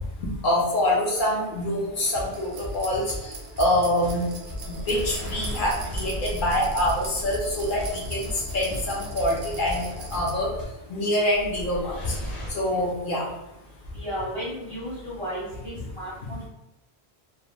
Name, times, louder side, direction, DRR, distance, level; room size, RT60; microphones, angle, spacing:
voice 1, 0.4-4.3 4.9-10.5 10.9-12.1 12.5-13.2, left 1 dB, 60° left, -3 dB, 0.7 m, -25 dB
sound 1, 1.6-1.9 4.4-8.9 11.3-12.5, left 1 dB, 90° left, 1.0 m, -36 dB
sound 2, 1.9-10.6, left 1 dB, 25° left, 0.6 m, -38 dB
sound 3, 2.3-10.3, right 4 dB, 85° right, 0.9 m, -42 dB
voice 2, 13.9-16.5, equal, 40° right, -7 dB, 0.4 m, -34 dB
2.3 x 2.1 x 3.1 m, 0.90 s
omnidirectional pair, 1.1 m